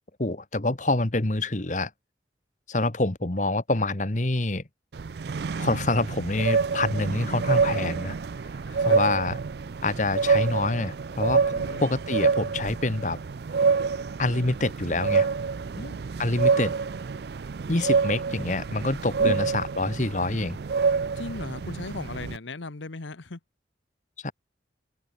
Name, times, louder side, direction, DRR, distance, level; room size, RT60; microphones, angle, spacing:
voice 1, 0.2-1.9 2.7-4.6 5.6-8.2 8.8-9.4 9.8-13.2 14.2-15.3 16.2-16.7 17.7-20.6 24.2-24.3, left 2 dB, 40° left, 1.4 m, -26 dB
sound 1, 4.9-22.4, right 5 dB, 60° right, 0.4 m, -27 dB
voice 2, 8.7-9.2 11.5-11.9 15.7-16.0 19.2-19.4 21.2-23.4, left 3 dB, 85° left, 1.2 m, -37 dB
open air
head